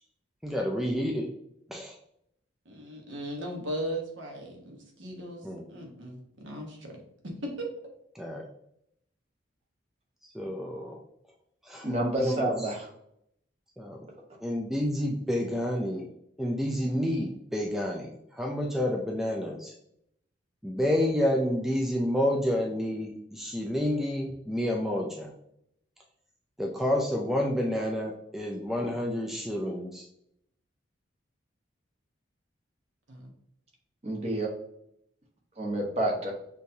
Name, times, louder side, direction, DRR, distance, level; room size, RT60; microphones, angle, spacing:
voice 1, 0.4-1.3 1.7-2.0 5.4-5.6 8.2-8.5 10.3-11.0 11.7-11.9 12.2-12.5 13.8-14.1 14.4-16.1 16.4-19.7 20.6-25.3 26.6-30.0, left 1 dB, ahead, 0 dB, 0.3 m, -29 dB
voice 2, 2.6-7.7 33.1-33.3, right 1 dB, 70° right, 0 dB, 1.1 m, -38 dB
voice 3, 11.8-12.9 34.0-34.5 35.6-36.3, right 1 dB, 30° right, -1 dB, 0.9 m, -29 dB
6.2 x 2.6 x 2.7 m, 0.74 s
head